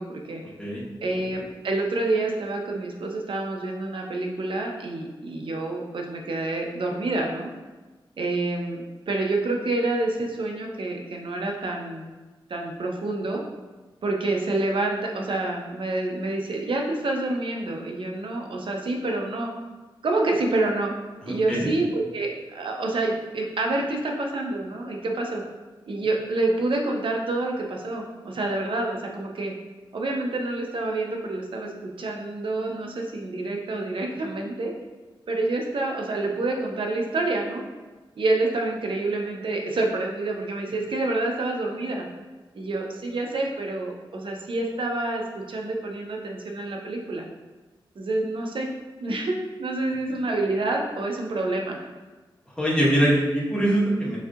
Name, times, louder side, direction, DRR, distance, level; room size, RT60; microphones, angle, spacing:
voice 1, 0.0-0.4 1.0-7.5 8.2-12.0 12.5-13.4 14.0-19.5 20.0-20.9 21.2-25.4 25.9-29.5 29.9-34.7 35.3-37.6 38.1-42.1 42.5-47.3 48.0-48.7 49.0-51.8, right 2 dB, 65° right, 1 dB, 0.7 m, -27 dB
voice 2, 21.2-21.7 52.6-54.2, right 1 dB, 10° left, -6 dB, 1.3 m, -22 dB
6.2 x 2.8 x 2.5 m, 1.2 s
wide cardioid pair, 75°, 9 cm